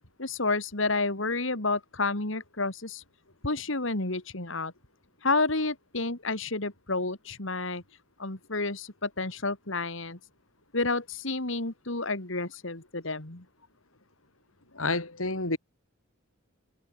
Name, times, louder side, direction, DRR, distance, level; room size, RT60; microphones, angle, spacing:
voice 1, 0.2-3.0 3.4-4.7 5.2-7.8 8.2-10.2 10.7-13.4, left 3 dB, 65° left, 2.8 m, -30 dB
voice 2, 14.7-15.6, left 2 dB, 80° left, 5.8 m, -29 dB
head